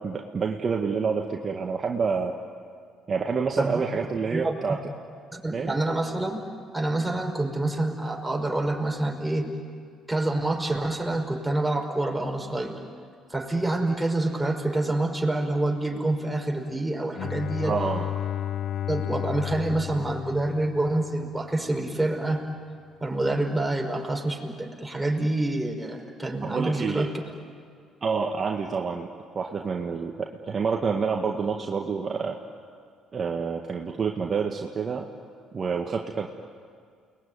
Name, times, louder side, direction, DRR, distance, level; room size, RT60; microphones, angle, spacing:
voice 1, 0.0-2.4 3.1-4.8 5.5-5.7 17.6-18.1 26.4-27.2 28.0-32.4 33.1-35.1 35.5-36.3, right 5 dB, 40° right, 2 dB, 1.8 m, -28 dB
voice 2, 4.3-4.8 5.3-6.4 6.7-9.5 10.1-12.8 13.3-17.7 18.9-22.4 23.0-27.1, right 2 dB, 10° right, 1 dB, 5.4 m, -27 dB
Bowed string instrument, 17.2-21.1, left 11 dB, 60° left, 0.8 m, -32 dB
30.0 x 20.5 x 9.5 m, 2.1 s
hypercardioid pair, 55°, 0 cm